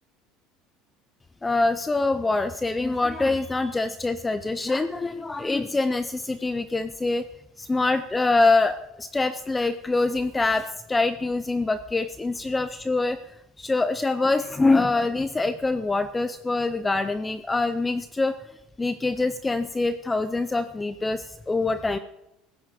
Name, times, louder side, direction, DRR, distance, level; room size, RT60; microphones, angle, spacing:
voice 1, 1.4-7.2 7.6-13.2 13.6-18.4 18.8-22.0, left 3 dB, 10° left, 12 dB, 0.5 m, -24 dB
16.0 x 9.3 x 6.5 m, 0.87 s
cardioid pair, 155°, 0 cm